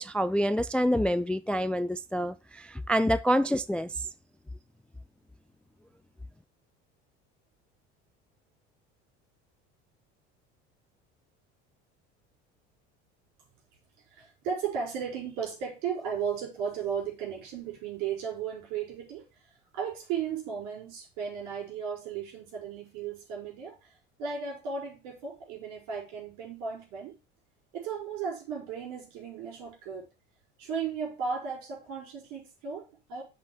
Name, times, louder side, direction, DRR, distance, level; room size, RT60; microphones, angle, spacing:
voice 1, 0.0-3.9, equal, 5° left, 0.3 m, -27 dB
voice 2, 14.1-19.2 19.7-23.9 24.2-27.2 27.7-30.1 30.6-33.2, right 6 dB, 70° right, 5.0 m, -35 dB
7.5 x 4.4 x 6.3 m
hypercardioid pair, 75°, 33 cm